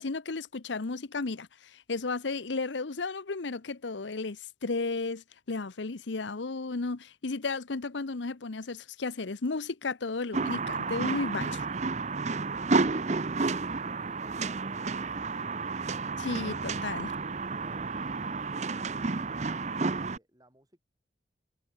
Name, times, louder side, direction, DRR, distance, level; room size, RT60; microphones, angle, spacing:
voice 1, 0.0-11.6 16.2-17.1, left 3 dB, 85° left, 0.9 m, -34 dB
sound 1, 10.3-20.2, right 4 dB, 40° right, 0.7 m, -31 dB
voice 2, 17.4-20.8, right 1 dB, 20° right, 6.6 m, -60 dB
head